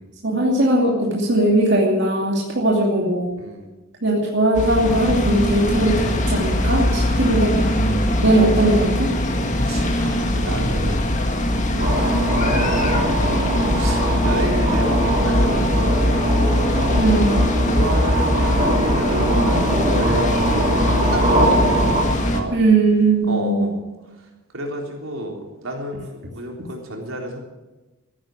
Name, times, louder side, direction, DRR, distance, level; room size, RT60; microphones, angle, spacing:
voice 1, 0.2-3.3 4.0-7.6 8.2-9.1 17.0-17.3 22.5-23.6, right 2 dB, 60° right, -2 dB, 2.7 m, -19 dB
voice 2, 3.4-3.7 6.6-8.3 9.6-13.2 13.7-16.8 17.1-17.2 17.7-21.7 22.3-22.6 23.3-23.8 24.2-24.3 24.5-27.4, right 1 dB, 80° right, 1 dB, 3.8 m, -30 dB
sound 1, 4.5-22.4, left 1 dB, 35° left, 1.9 m, -21 dB
sound 2, 11.8-22.0, right 1 dB, 35° right, 3.8 m, -23 dB
15.0 x 11.0 x 8.0 m, 1.1 s
head